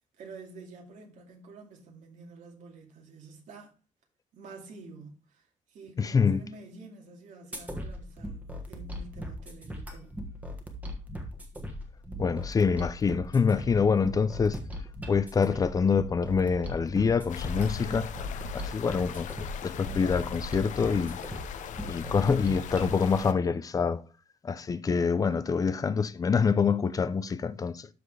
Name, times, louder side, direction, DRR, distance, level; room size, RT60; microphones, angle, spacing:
voice 1, 0.2-3.8 4.3-10.2, right 3 dB, 80° right, 2.3 m, -49 dB
voice 2, 6.0-6.4 12.2-14.6 15.1-18.1 18.5-19.3 19.6-21.2 21.9-24.0 24.4-27.9, left 5 dB, 30° left, 0.5 m, -26 dB
sound 1, 7.5-22.9, equal, 10° right, 1.3 m, -39 dB
sound 2, 17.3-23.3, left 7 dB, 75° left, 0.7 m, -38 dB
12.5 x 4.3 x 3.3 m
cardioid pair, 145°, 13 cm